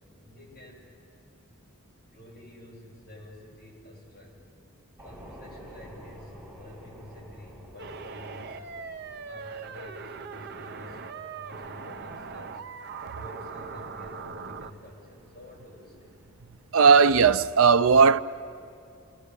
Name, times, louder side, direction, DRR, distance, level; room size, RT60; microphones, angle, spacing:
voice 1, 0.2-0.9 2.1-4.5 5.0-8.8 9.2-12.6 13.1-16.1, left 1 dB, 45° left, 7.7 m, -48 dB
sound 1, 5.0-16.9, equal, 10° right, 5.8 m, -52 dB
sound 2, 7.8-14.7, right 5 dB, 50° right, 0.9 m, -40 dB
voice 2, 16.7-18.2, right 5 dB, 75° right, 0.6 m, -17 dB
29.5 x 19.5 x 8.3 m
head